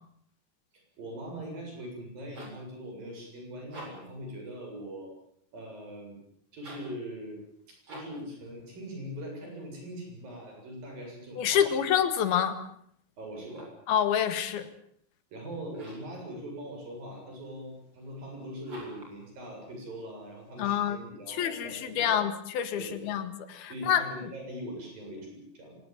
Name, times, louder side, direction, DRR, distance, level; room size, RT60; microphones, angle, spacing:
voice 1, 0.7-5.1 5.5-6.2 6.5-7.4 7.7-11.9 13.2-13.7 15.3-22.2 22.8-23.1 23.6-25.8, equal, 70° right, 2 dB, 9.3 m, -41 dB
sound 1, 2.3-2.7 3.6-4.2 6.5-7.0 7.8-8.3 13.3-13.9 15.7-16.2 18.6-19.2, right 1 dB, 30° right, 8.1 m, -48 dB
voice 2, 11.4-12.6 13.9-14.7 20.6-21.0 21.3-24.1, left 9 dB, 90° left, 11 dB, 3.7 m, -27 dB
24.5 x 19.0 x 9.0 m, 0.69 s
omnidirectional pair, 4.3 m